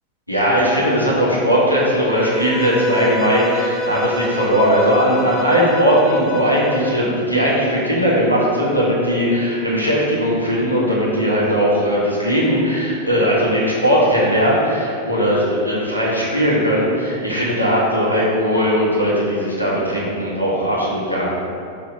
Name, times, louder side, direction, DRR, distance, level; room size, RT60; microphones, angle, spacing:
voice 1, 0.3-21.3, equal, 90° left, -7 dB, 1.5 m, -18 dB
Bowed string instrument, 2.1-7.1, left 2 dB, 15° left, 0.6 m, -27 dB
5.8 x 3.3 x 5.1 m, 2.5 s
figure-of-eight pair, 90°, 0 cm